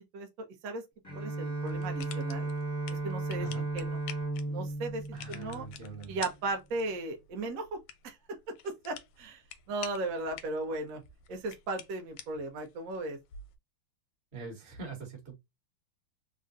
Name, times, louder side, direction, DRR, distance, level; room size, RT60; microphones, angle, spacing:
voice 1, 0.1-0.8 1.1-2.5 3.0-3.5 3.7-4.0 4.5-5.7 6.1-7.8 8.0-8.4 8.6-9.4 9.7-11.0 11.3-13.2, right 2 dB, 70° right, 0.8 m, -36 dB
Bowed string instrument, 1.0-6.3, right 2 dB, 20° left, 0.5 m, -35 dB
sound 1, 1.7-13.6, left 8 dB, 85° left, 1.5 m, -49 dB
voice 2, 5.1-6.2 14.3-15.3, right 3 dB, 35° right, 1.0 m, -43 dB
3.6 x 2.2 x 2.5 m
omnidirectional pair, 2.4 m